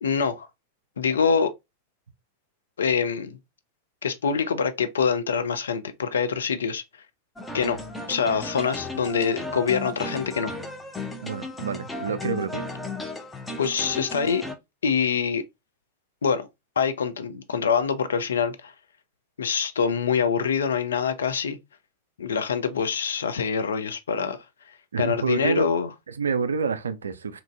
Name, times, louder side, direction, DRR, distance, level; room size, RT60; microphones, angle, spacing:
voice 1, 0.0-0.5 1.0-1.5 2.8-3.4 4.0-6.8 7.5-7.8 8.1-10.5 13.6-14.4 14.8-15.4 16.2-16.5 16.8-18.7 19.4-21.6 22.2-24.4 25.0-25.9, left 6 dB, 65° left, 0.4 m, -25 dB
sound 1, 7.4-14.5, left 2 dB, 10° left, 0.5 m, -35 dB
voice 2, 11.2-12.7 24.9-25.7 26.1-27.4, right 5 dB, 70° right, 0.3 m, -28 dB
2.9 x 2.5 x 2.3 m
figure-of-eight pair, 90°, 0 cm